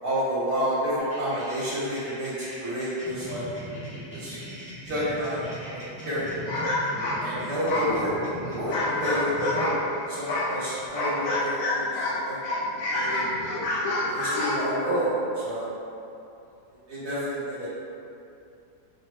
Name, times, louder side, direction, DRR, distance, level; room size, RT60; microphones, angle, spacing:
voice 1, 0.0-2.3 2.6-3.5 4.1-4.4 4.8-5.4 5.7-6.2 7.2-8.1 8.5-8.7 9.0-9.7 10.1-12.5 12.9-13.2 14.1-15.1 15.4-15.7 16.9-17.7, equal, 65° right, -11 dB, 1.5 m, -29 dB
sound 1, 1.0-11.6, equal, 10° right, 0.3 m, -41 dB
sound 2, 6.5-9.8 10.3-12.2 12.4-14.6, left 2 dB, 55° left, 0.9 m, -27 dB
4.9 x 2.3 x 3.2 m, 2.7 s
omnidirectional pair, 1.8 m